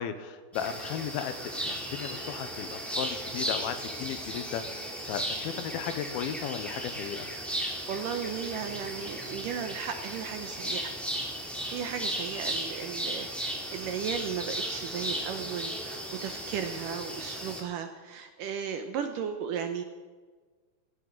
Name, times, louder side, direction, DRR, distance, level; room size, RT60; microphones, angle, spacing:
voice 1, 0.0-7.3, left 9 dB, 80° left, 10 dB, 2.7 m, -36 dB
sound 1, 0.5-17.6, equal, ahead, 1.8 m, -36 dB
voice 2, 7.9-10.9 11.7-19.8, right 7 dB, 75° right, 6 dB, 2.0 m, -35 dB
17.5 x 16.0 x 4.0 m, 1.4 s
omnidirectional pair, 4.5 m